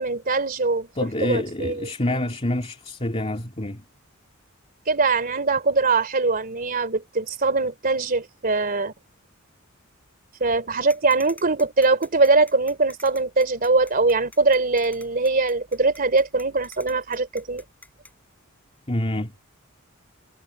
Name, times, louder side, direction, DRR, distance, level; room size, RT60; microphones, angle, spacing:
voice 1, 0.0-0.9 1.2-1.9 4.9-8.9 10.4-17.6, right 3 dB, 45° right, 3.2 m, -22 dB
voice 2, 1.0-3.8 18.9-19.3, left 1 dB, 30° left, 2.7 m, -27 dB
sound 1, 10.9-18.1, left 2 dB, 10° left, 7.7 m, -46 dB
head